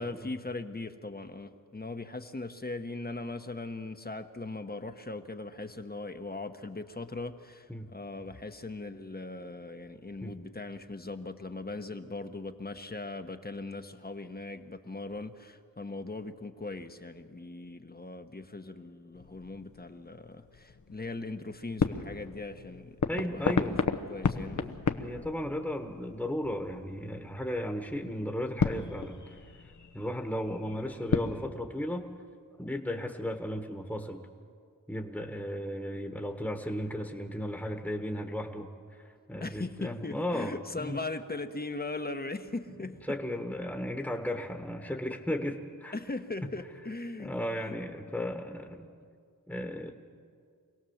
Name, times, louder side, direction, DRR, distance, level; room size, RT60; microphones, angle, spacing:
voice 1, 0.0-24.6 39.4-43.2 45.9-47.7, left 2 dB, 25° left, 8 dB, 1.1 m, -39 dB
sound 1, 19.1-31.5, left 5 dB, 55° left, 1.0 m, -35 dB
voice 2, 23.1-23.8 24.5-29.4 29.9-32.1 32.6-34.2 34.9-41.0 42.8-46.0 46.4-46.5 47.2-48.9 49.5-49.9, left 1 dB, 5° left, 4 dB, 1.4 m, -35 dB
25.5 x 17.5 x 7.2 m, 2.2 s
cardioid pair, 60°, 35 cm